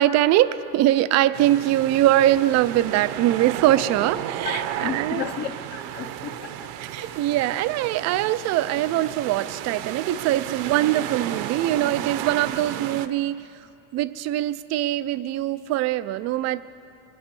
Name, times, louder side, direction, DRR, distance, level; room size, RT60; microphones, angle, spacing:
voice 1, 0.0-5.3 6.9-13.5 13.9-16.6, right 14 dB, 35° right, 15 dB, 0.4 m, -22 dB
sound 1, 1.3-13.1, right 11 dB, 65° right, 0.8 m, -33 dB
voice 2, 4.4-7.2, left 7 dB, 35° left, 3 dB, 0.7 m, -34 dB
22.0 x 8.7 x 6.9 m, 2.7 s
supercardioid pair, 125°, 49 cm